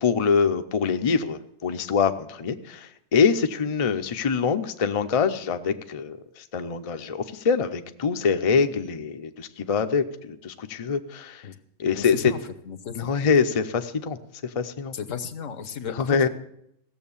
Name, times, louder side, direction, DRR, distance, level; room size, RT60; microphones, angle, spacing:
voice 1, 0.0-11.4 11.8-12.3 13.0-14.2 14.4-14.9 15.9-16.3, left 5 dB, 40° left, 8 dB, 0.5 m, -24 dB
voice 2, 11.9-12.4 12.6-13.3 14.9-16.3, left 7 dB, 75° left, 11 dB, 1.3 m, -34 dB
16.5 x 7.2 x 7.1 m, 0.76 s
omnidirectional pair, 1.3 m